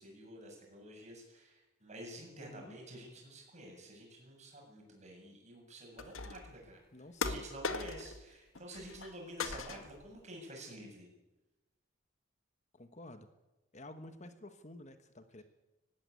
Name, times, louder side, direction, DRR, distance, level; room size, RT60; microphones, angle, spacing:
voice 1, 0.0-6.8 7.2-11.1, right 1 dB, 35° right, 0 dB, 7.8 m, -50 dB
voice 2, 2.3-2.8 6.9-7.5 12.7-13.3 13.7-15.4, left 1 dB, 35° left, 9 dB, 1.3 m, -51 dB
sound 1, 6.0-6.5 7.2-8.2 8.5-9.1 9.4-10.1, left 4 dB, 85° left, 1.8 m, -39 dB
19.0 x 16.5 x 9.6 m, 1.0 s
head